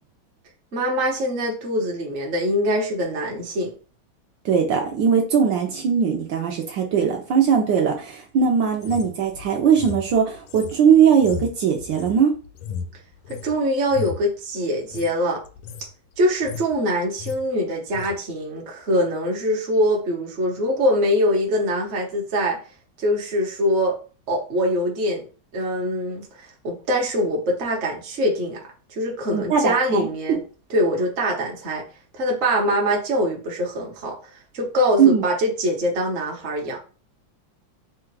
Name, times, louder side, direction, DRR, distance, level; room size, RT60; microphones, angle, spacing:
voice 1, 0.7-3.7 13.3-15.4 16.2-22.6 23.0-24.0 24.3-25.3 25.5-28.6 28.9-30.4 30.7-31.8 32.1-34.2 34.5-36.8, equal, 45° right, -1 dB, 0.9 m, -23 dB
voice 2, 4.4-12.3 29.3-30.1 35.0-35.2, right 7 dB, 70° right, 2 dB, 1.3 m, -19 dB
sound 1, 8.8-13.5 13.9-14.3 14.8-15.1 15.4-15.9 16.2-16.8 17.0-17.4 17.9-18.1, left 6 dB, 85° left, 1.4 m, -35 dB
3.8 x 2.3 x 4.5 m, 0.36 s
omnidirectional pair, 2.2 m